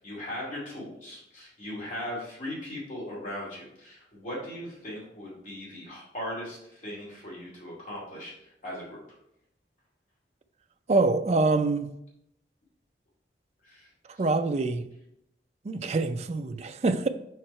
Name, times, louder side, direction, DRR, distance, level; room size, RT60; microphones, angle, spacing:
voice 1, 0.0-9.0 13.6-13.9, left 1 dB, 45° left, -6 dB, 2.4 m, -38 dB
voice 2, 10.9-11.9 14.2-14.9 15.6-17.1, right 3 dB, 35° right, 8 dB, 0.4 m, -25 dB
5.4 x 4.7 x 4.3 m, 0.78 s
head